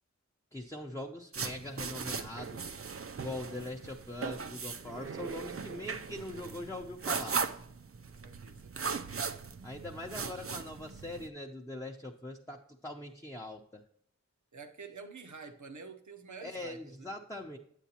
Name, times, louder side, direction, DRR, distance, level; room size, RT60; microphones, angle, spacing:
voice 1, 0.5-2.7 3.2-7.4 9.6-13.8 16.4-17.6, left 1 dB, 10° left, 0.7 m, -42 dB
sound 1, 1.3-11.3, right 5 dB, 50° right, 0.5 m, -38 dB
voice 2, 8.2-8.9 14.5-17.1, right 4 dB, 80° right, 0.8 m, -48 dB
9.0 x 8.2 x 2.9 m
wide cardioid pair, 45°, 29 cm